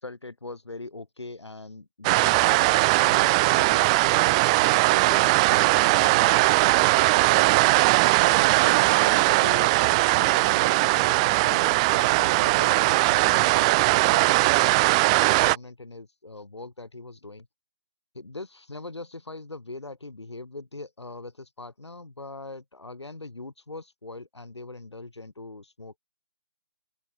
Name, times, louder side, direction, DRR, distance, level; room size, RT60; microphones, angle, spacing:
voice 1, 0.0-7.5 8.2-17.5 18.1-26.0, left 2 dB, 80° left, 4.1 m, -41 dB
sound 1, 2.0-15.6, right 24 dB, 15° right, 0.4 m, -20 dB
open air
figure-of-eight pair, 145°, 14 cm